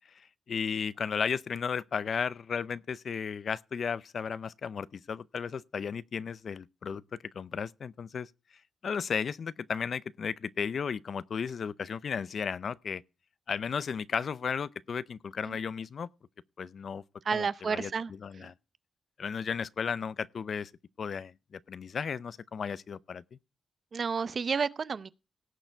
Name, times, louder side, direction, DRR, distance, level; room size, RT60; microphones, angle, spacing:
voice 1, 0.5-8.3 8.8-13.0 13.5-16.1 16.6-17.0 17.3-17.9 18.2-18.5 19.2-20.7 21.0-23.2, left 6 dB, 55° left, 0.5 m, -34 dB
voice 2, 17.2-18.1 18.4-18.5 23.9-25.1, right 5 dB, 45° right, 0.6 m, -31 dB
17.5 x 6.8 x 4.5 m
wide cardioid pair, 120°, 0 cm